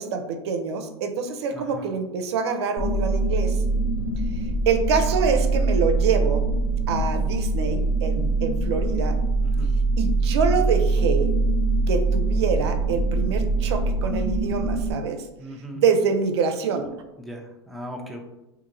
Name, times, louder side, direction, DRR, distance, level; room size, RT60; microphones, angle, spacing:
voice 1, 0.0-3.6 4.4-6.4 6.9-9.2 10.0-11.3 11.9-15.2 15.7-16.9, right 5 dB, 80° right, 7 dB, 0.4 m, -25 dB
voice 2, 1.5-1.9 9.4-9.7 15.4-15.8 17.2-18.2, equal, ahead, 0 dB, 0.4 m, -38 dB
sound 1, 2.8-14.9, right 3 dB, 65° left, 0.9 m, -23 dB
2.8 x 2.5 x 2.6 m, 0.95 s
hypercardioid pair, 115°, 14 cm